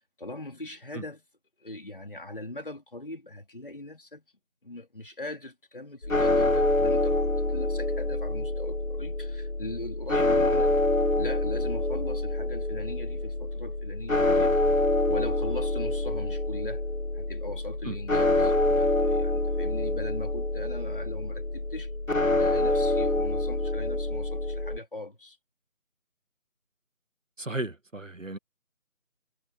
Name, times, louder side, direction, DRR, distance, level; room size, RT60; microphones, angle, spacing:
voice 1, 0.2-1.2 1.6-4.2 4.6-10.7 11.2-14.5 15.1-16.9 17.1-21.9 22.3-25.4, left 2 dB, 40° left, 4.0 m, -40 dB
sound 1, 6.0-24.8, left 1 dB, 70° left, 2.0 m, -26 dB
voice 2, 27.4-28.4, right 2 dB, 65° right, 2.2 m, -34 dB
figure-of-eight pair, 175°, 42 cm